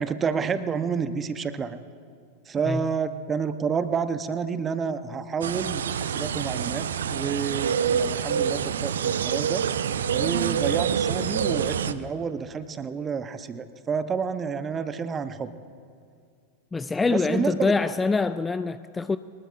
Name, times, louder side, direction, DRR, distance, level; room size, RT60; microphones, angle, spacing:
voice 1, 0.0-1.8 2.5-9.7 10.1-15.5 17.1-17.7, right 6 dB, 20° right, 12 dB, 0.8 m, -29 dB
sound 1, 5.4-11.9, right 8 dB, 65° right, 0.6 m, -26 dB
voice 2, 16.7-19.2, left 4 dB, 10° left, 13 dB, 0.3 m, -25 dB
23.5 x 20.0 x 2.5 m, 2.2 s
figure-of-eight pair, 90°, 0 cm